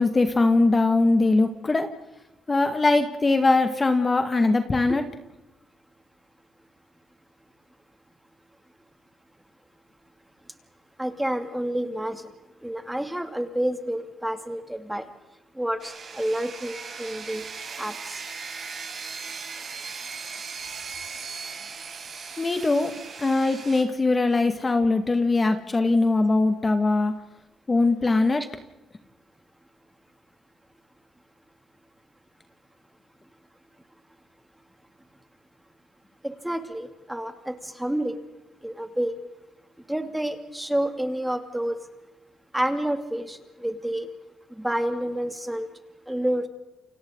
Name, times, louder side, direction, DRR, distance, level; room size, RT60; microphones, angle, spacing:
voice 1, 0.0-1.9 2.5-5.0 22.4-22.9 23.2-27.1 27.7-28.4, left 3 dB, 25° left, 6 dB, 1.9 m, -21 dB
voice 2, 11.0-12.2 12.6-15.0 15.6-17.4 17.8-18.1 36.2-38.2 38.6-39.2 39.9-41.7 42.5-44.1 44.6-45.7 46.1-46.5, right 1 dB, 5° right, 6 dB, 2.6 m, -29 dB
sound 1, 15.8-23.8, right 5 dB, 50° right, 6.3 m, -38 dB
29.5 x 25.5 x 4.0 m, 1.0 s
cardioid pair, 90°, 0 cm